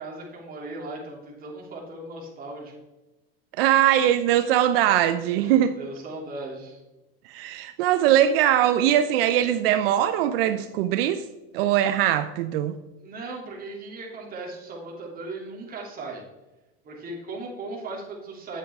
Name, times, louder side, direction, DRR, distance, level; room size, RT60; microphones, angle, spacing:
voice 1, 0.0-2.7 5.4-6.8 13.0-16.2 16.8-18.6, right 2 dB, 30° right, 3.1 m, -37 dB
voice 2, 3.6-5.7 7.3-11.2 11.5-12.7, right 11 dB, 80° right, 0.7 m, -21 dB
9.6 x 8.2 x 3.6 m
supercardioid pair, 135°, 29 cm